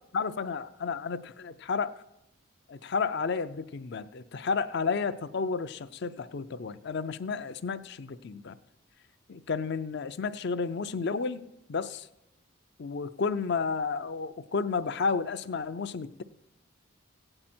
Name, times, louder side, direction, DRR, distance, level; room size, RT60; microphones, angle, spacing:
voice 1, 0.1-1.9 2.7-8.6 9.3-11.4 11.7-12.1 12.8-16.2, left 5 dB, 50° left, 13 dB, 0.5 m, -32 dB
16.0 x 8.8 x 4.4 m, 0.87 s
head